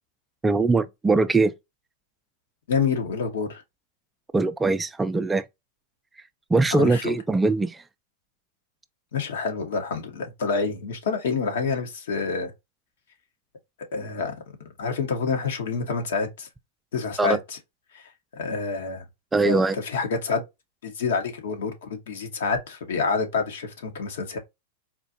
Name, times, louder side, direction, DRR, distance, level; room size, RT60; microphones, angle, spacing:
voice 1, 0.4-1.5 4.3-5.4 6.5-7.8 17.2-17.4 19.3-19.8, right 3 dB, 15° right, 0.4 m, -21 dB
voice 2, 2.7-3.6 6.7-7.1 9.1-12.5 13.9-14.3 14.8-16.5 16.9-17.6 17.9-18.0 18.3-19.0 19.4-20.4 20.8-24.4, left 5 dB, 75° left, 1.2 m, -27 dB
4.3 x 2.5 x 2.6 m
hypercardioid pair, 105°, 0 cm